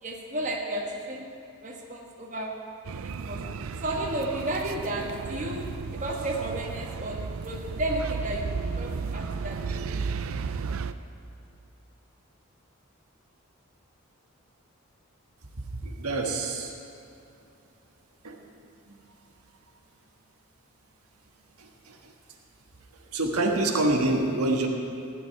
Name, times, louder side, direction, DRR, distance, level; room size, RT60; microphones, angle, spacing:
voice 1, 0.0-1.3 1.6-2.6 3.0-3.5 3.8-10.0, right 1 dB, 35° right, 0 dB, 1.3 m, -33 dB
sound 1, 2.8-10.9, right 5 dB, 70° right, 0.4 m, -34 dB
voice 2, 15.6-16.7 18.2-18.4 21.6-22.1 22.9-24.7, right 2 dB, 90° right, 1 dB, 1.5 m, -27 dB
16.0 x 5.3 x 9.9 m, 2.6 s
head